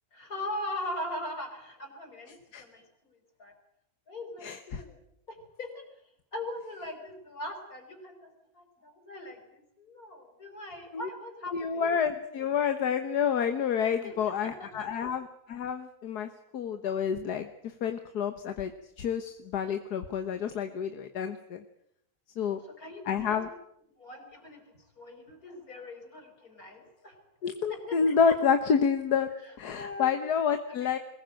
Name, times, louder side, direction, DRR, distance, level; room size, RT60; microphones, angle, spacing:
voice 1, 0.1-3.5 4.1-5.0 5.3-5.9 6.3-11.8 14.0-14.1 14.4-14.9 22.4-23.4 24.0-24.6 25.0-27.2 27.7-28.4 29.4-30.2 30.8-30.9, left 1 dB, 65° left, 5 dB, 5.5 m, -41 dB
voice 2, 4.4-4.8 10.9-11.1 11.5-18.7 19.0-21.6 22.4-22.6 23.1-23.5 27.4-29.3 29.6-31.0, left 7 dB, 85° left, 8 dB, 1.8 m, -29 dB
22.0 x 20.0 x 9.0 m, 0.75 s
omnidirectional pair, 1.6 m